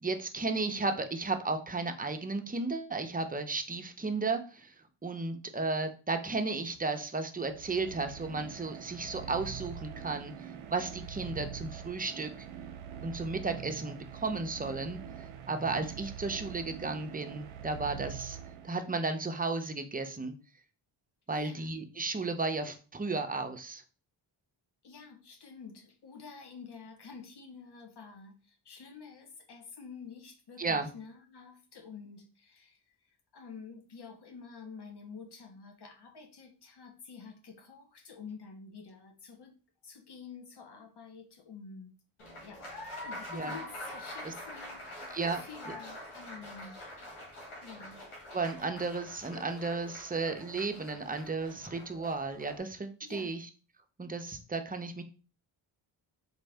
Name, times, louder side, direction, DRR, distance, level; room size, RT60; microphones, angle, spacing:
voice 1, 0.0-4.7 5.0-10.3 10.7-12.3 13.0-15.0 15.5-18.4 18.6-20.3 21.3-23.8 30.6-30.9 43.3-43.5 44.2-44.3 45.1-45.4 45.7-45.8 48.3-53.5 54.0-55.0, right 3 dB, 15° right, 0.7 m, -34 dB
sound 1, 7.3-19.1, right 8 dB, 75° right, 0.6 m, -44 dB
voice 2, 21.3-21.7 24.8-39.5 39.8-41.9 42.4-42.7 43.0-46.8 47.6-48.0 53.0-53.3, left 5 dB, 55° left, 1.1 m, -49 dB
Applause, 42.2-52.6, left 1 dB, 85° left, 1.7 m, -45 dB
4.3 x 2.5 x 3.3 m
cardioid pair, 50°, 50 cm